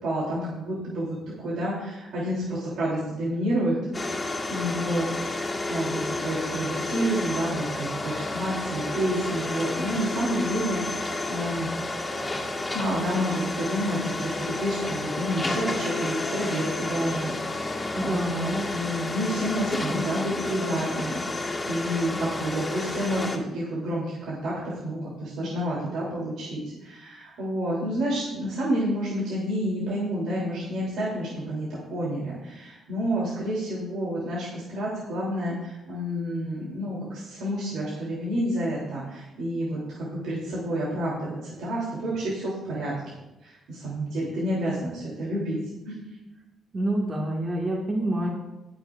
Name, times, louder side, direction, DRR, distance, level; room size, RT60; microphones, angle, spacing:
voice 1, 0.0-3.7 4.5-11.7 12.7-17.3 18.0-42.9 43.4-45.6 45.8-46.0, equal, 80° right, -7 dB, 3.2 m, -29 dB
sound 1, 3.9-23.4, left 2 dB, 20° left, 1.9 m, -31 dB
voice 2, 17.9-18.6 46.7-48.3, right 1 dB, 35° right, -2 dB, 1.9 m, -27 dB
20.5 x 6.9 x 2.6 m, 1.0 s
cardioid pair, 90°, 0 cm